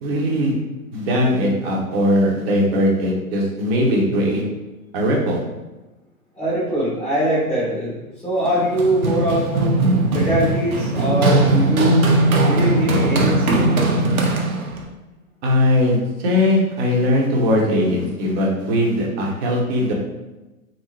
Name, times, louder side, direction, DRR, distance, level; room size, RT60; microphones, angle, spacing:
voice 1, 0.0-0.5 0.9-4.4 4.9-5.4 15.4-19.9, left 1 dB, 45° right, -1 dB, 0.9 m, -19 dB
voice 2, 6.3-9.7 10.1-12.1 12.4-13.6, equal, ahead, -8 dB, 1.4 m, -22 dB
Run, 8.4-14.8, right 2 dB, 75° right, 0.8 m, -19 dB
3.5 x 2.1 x 3.2 m, 1.1 s
hypercardioid pair, 120°, 44 cm